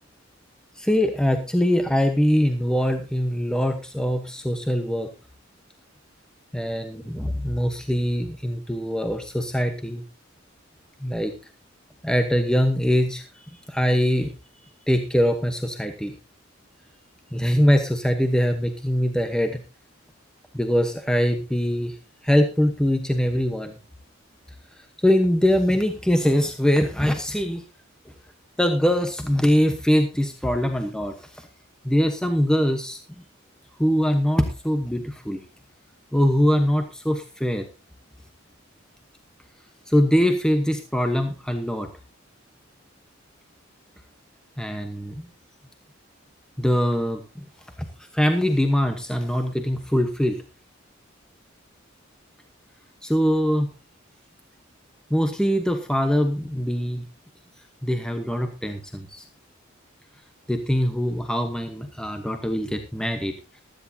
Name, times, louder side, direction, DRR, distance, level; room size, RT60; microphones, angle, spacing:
voice 1, 0.8-5.1 6.5-10.0 11.0-11.3 12.0-14.3 14.9-16.1 17.3-19.6 20.5-22.0 22.2-23.8 24.8-27.6 28.6-31.5 31.8-33.0 33.8-35.4 36.1-37.7 39.9-41.9 44.6-45.3 46.6-47.4 48.0-50.4 53.0-53.7 55.1-57.1 57.8-59.2 60.5-63.3, equal, 5° left, 6 dB, 1.0 m, -23 dB
15.5 x 13.0 x 2.8 m, 0.30 s
head